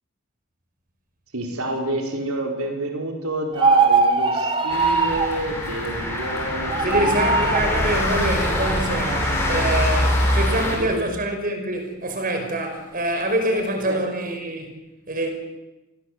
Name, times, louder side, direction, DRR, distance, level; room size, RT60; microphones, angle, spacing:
voice 1, 1.3-7.7 9.0-9.1 9.7-9.9 10.6-11.1 13.5-14.0, right 1 dB, 90° right, 2 dB, 4.7 m, -29 dB
sound 1, 3.5-5.4 6.7-7.7, right 4 dB, 25° right, 2.5 m, -20 dB
sound 2, 4.7-10.8, left 1 dB, 10° left, 6.9 m, -24 dB
voice 2, 6.8-14.7 15.1-15.3, right 1 dB, 40° right, 5 dB, 5.5 m, -25 dB
28.0 x 19.5 x 8.1 m, 1.1 s
head